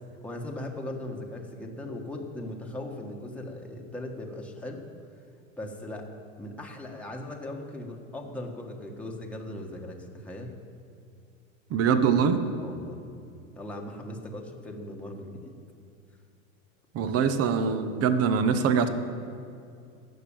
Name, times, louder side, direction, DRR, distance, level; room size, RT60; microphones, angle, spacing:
voice 1, 0.2-4.9 5.6-6.1 6.4-10.5 12.6-13.1 13.5-15.6, left 1 dB, 5° left, 0 dB, 1.5 m, -38 dB
voice 2, 11.7-12.4 16.9-18.9, right 6 dB, 35° right, 10 dB, 1.2 m, -23 dB
14.5 x 6.2 x 8.9 m, 2.4 s
hypercardioid pair, 110°, 40 cm